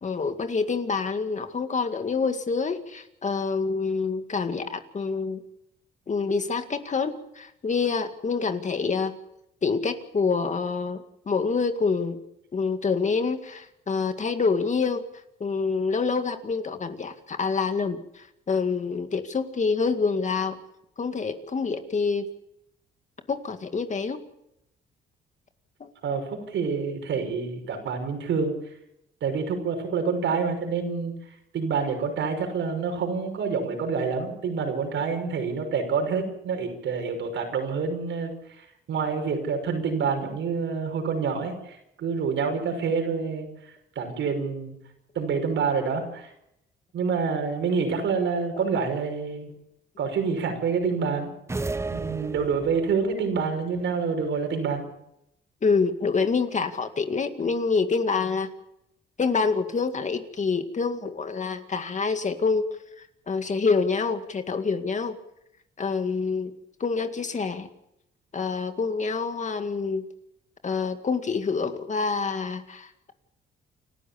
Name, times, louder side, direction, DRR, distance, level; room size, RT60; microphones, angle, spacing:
voice 1, 0.0-5.4 6.1-9.2 9.6-12.2 12.5-15.0 15.4-20.6 21.0-22.3 23.3-24.2 25.8-25.9 55.6-58.5 59.2-65.2 65.8-66.5 66.8-67.7 68.3-70.0 70.6-73.1, left 4 dB, 35° left, 7 dB, 2.1 m, -27 dB
voice 2, 26.0-28.5 29.2-31.1 31.5-38.3 38.6-43.5 44.0-44.8 45.1-46.3 46.9-49.5 50.0-51.3 51.9-54.8, right 5 dB, 70° right, 5 dB, 5.8 m, -27 dB
sound 1, 51.5-53.0, right 3 dB, 15° right, 0.7 m, -32 dB
29.0 x 13.0 x 7.1 m, 0.80 s
cardioid pair, 90°, 20 cm